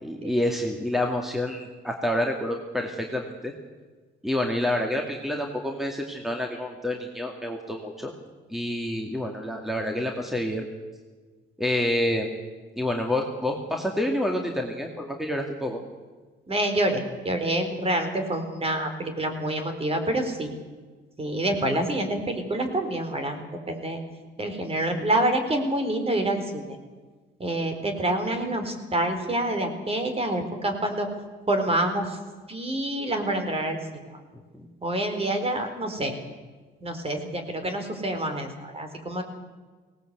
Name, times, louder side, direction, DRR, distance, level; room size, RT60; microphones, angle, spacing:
voice 1, 0.0-3.5 4.2-8.1 8.5-10.7 11.6-12.3 12.8-15.8 34.5-34.6, left 1 dB, ahead, 2 dB, 2.3 m, -28 dB
voice 2, 16.5-20.5 21.2-23.4 23.7-24.0 24.4-26.6 27.4-31.1 31.5-32.2 32.5-33.8 34.1-34.2 34.8-36.1 36.8-39.2, right 1 dB, 30° right, 6 dB, 4.1 m, -27 dB
18.5 x 18.5 x 8.2 m, 1.4 s
cardioid pair, 90°, 20 cm